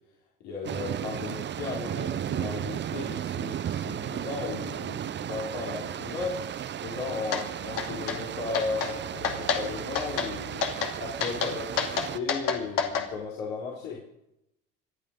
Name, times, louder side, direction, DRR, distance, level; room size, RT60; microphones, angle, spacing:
voice 1, 0.4-10.7 11.0-14.0, left 4 dB, 80° left, -5 dB, 4.1 m, -35 dB
sound 1, 0.6-12.2, right 10 dB, 30° right, 0.6 m, -34 dB
sound 2, 7.3-7.4 7.8-8.2 8.5-8.9 9.2-9.6 9.9-10.3 10.6-10.9 11.2-13.1, left 7 dB, 65° left, 2.6 m, -28 dB
25.5 x 9.5 x 5.3 m, 0.82 s
supercardioid pair, 85°, 36 cm